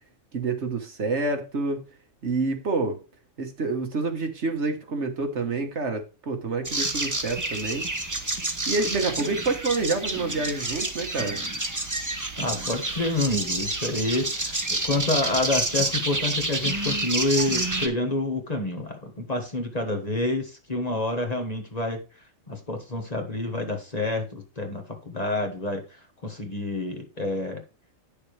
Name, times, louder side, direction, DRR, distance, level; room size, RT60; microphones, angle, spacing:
voice 1, 0.3-1.8 2.2-3.0 3.4-7.8 8.7-11.4, right 3 dB, 60° right, 1.6 m, -28 dB
sound 1, 6.6-17.9, right 2 dB, 15° right, 0.9 m, -29 dB
voice 2, 12.4-22.0 22.5-27.6, left 2 dB, 30° left, 1.5 m, -28 dB
9.6 x 6.8 x 3.3 m
omnidirectional pair, 1.4 m